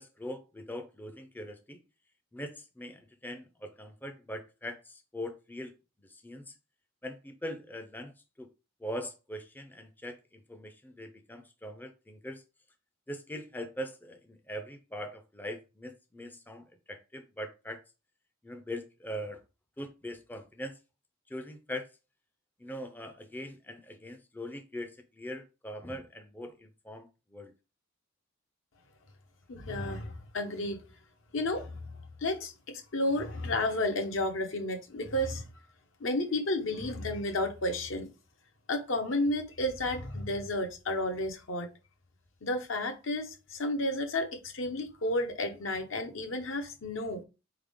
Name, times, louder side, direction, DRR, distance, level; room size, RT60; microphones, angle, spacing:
voice 1, 0.0-1.8 2.3-5.7 6.1-6.4 7.0-8.1 8.4-8.5 8.8-12.4 13.1-17.8 18.4-19.4 19.8-20.7 21.3-21.9 22.6-27.5, equal, 10° left, 0.4 m, -41 dB
voice 2, 29.5-30.8 31.3-31.9 32.2-35.5 36.0-38.1 38.7-41.7 42.4-47.2, left 1 dB, 70° left, 1.0 m, -32 dB
4.1 x 3.6 x 3.5 m
head